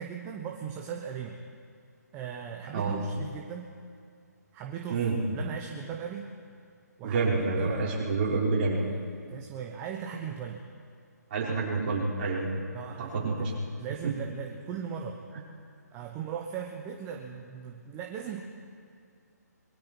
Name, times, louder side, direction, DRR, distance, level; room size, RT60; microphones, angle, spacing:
voice 1, 0.0-1.4 2.1-3.7 4.5-5.0 5.3-6.3 7.0-8.2 8.7-10.6 12.7-13.5 13.8-15.2 15.9-18.4, right 8 dB, 20° right, 2 dB, 1.1 m, -38 dB
voice 2, 7.0-8.8 11.3-12.5 13.0-13.5, right 4 dB, 35° right, -5 dB, 5.1 m, -28 dB
26.0 x 21.5 x 4.7 m, 2.4 s
figure-of-eight pair, 145°, 9 cm